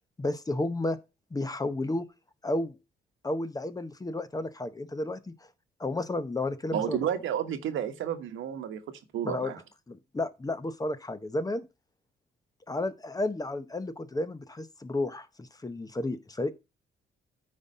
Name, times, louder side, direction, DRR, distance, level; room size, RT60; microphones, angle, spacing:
voice 1, 0.2-1.0 1.3-2.1 2.4-2.7 3.2-5.3 5.8-7.1 9.2-9.5 9.9-11.7 12.7-16.5, left 2 dB, 20° left, 0.8 m, -32 dB
voice 2, 6.7-8.8 9.1-9.6, right 9 dB, 80° right, 1.2 m, -31 dB
9.7 x 4.1 x 5.4 m
cardioid pair, 90°, 20 cm